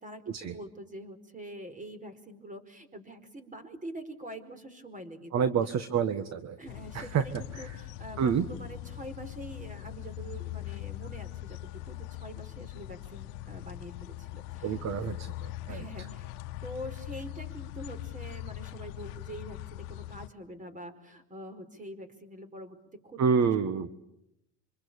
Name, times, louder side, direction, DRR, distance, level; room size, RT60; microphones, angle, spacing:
voice 1, 0.0-5.5 6.6-11.6 11.8-15.1 15.7-16.3 16.6-22.8 23.0-23.9, right 1 dB, 15° right, 11 dB, 4.7 m, -45 dB
voice 2, 5.3-6.6 6.9-7.2 7.5-7.7 8.2-8.4 14.6-15.1 15.7-15.8 23.2-23.9, right 6 dB, 35° right, 12 dB, 1.5 m, -27 dB
sound 1, 6.7-20.3, left 15 dB, 75° left, 1.2 m, -41 dB
26.5 x 25.5 x 8.7 m, 0.83 s
supercardioid pair, 110°, 45 cm